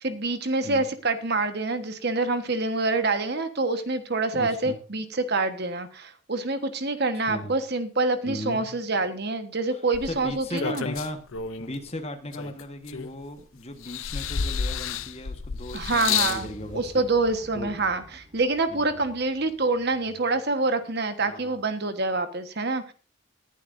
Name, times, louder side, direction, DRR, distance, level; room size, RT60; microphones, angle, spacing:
voice 1, 0.0-10.9 15.7-16.5 16.7-22.9, right 3 dB, 45° right, 8 dB, 1.4 m, -26 dB
voice 2, 4.3-4.8 7.3-7.6 8.2-8.7 9.7-9.8 10.1-11.2 11.6-17.1 17.5-17.9 18.7-19.0 21.2-21.6, left 1 dB, 30° left, 6 dB, 1.4 m, -37 dB
sound 1, 9.9-11.8 12.3-13.4 13.8-16.5 17.4-17.5, left 7 dB, 65° left, 0.6 m, -30 dB
sound 2, 14.8-21.1, equal, 20° right, 5.8 m, -50 dB
20.0 x 11.0 x 2.7 m, 0.36 s
head